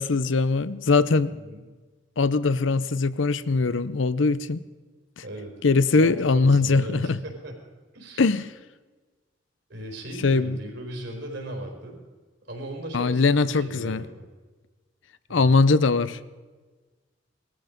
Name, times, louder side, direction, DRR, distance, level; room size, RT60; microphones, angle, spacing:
voice 1, 0.0-1.3 2.2-4.6 5.6-7.2 8.2-8.5 10.2-10.6 12.9-14.0 15.3-16.2, left 3 dB, 75° left, 15 dB, 0.7 m, -21 dB
voice 2, 1.3-1.6 5.2-5.5 5.9-7.5 7.9-8.3 9.7-12.0 12.5-14.3 15.3-15.6, right 1 dB, 60° right, 1 dB, 4.4 m, -37 dB
19.5 x 14.0 x 5.2 m, 1.3 s
head